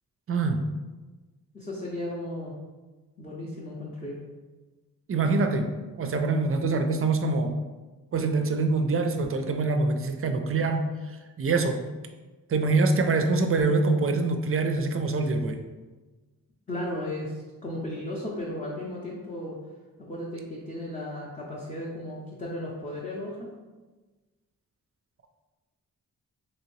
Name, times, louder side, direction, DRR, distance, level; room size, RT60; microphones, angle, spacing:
voice 1, 0.3-0.6 5.1-5.7 6.0-7.5 8.1-10.8 11.4-11.8 12.5-15.6, right 3 dB, 40° right, 6 dB, 0.4 m, -24 dB
voice 2, 1.5-2.6 3.2-4.2 16.7-17.3 17.6-19.6 20.1-23.5, left 1 dB, 20° left, -5 dB, 0.6 m, -35 dB
3.0 x 2.7 x 3.0 m, 1.2 s
cardioid pair, 60°, 36 cm